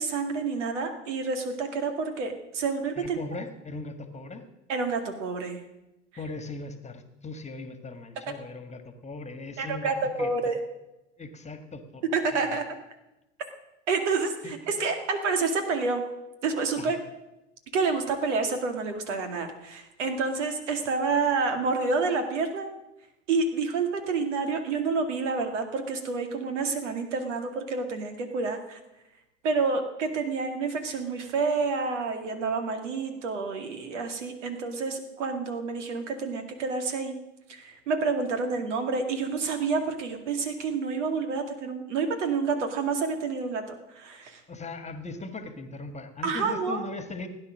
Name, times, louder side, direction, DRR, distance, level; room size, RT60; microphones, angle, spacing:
voice 1, 0.0-3.2 4.7-5.6 9.6-10.6 12.1-12.6 13.9-16.0 16.4-17.0 17.7-22.7 23.3-28.8 29.4-37.2 37.5-44.4 46.2-46.8, right 4 dB, 75° right, 6 dB, 2.1 m, -28 dB
voice 2, 2.9-4.4 6.2-10.3 11.2-12.0 12.3-12.6 14.4-14.7 16.8-17.0 44.5-47.3, left 3 dB, 20° left, 8 dB, 1.7 m, -39 dB
16.5 x 9.9 x 6.4 m, 0.97 s
hypercardioid pair, 80°, 36 cm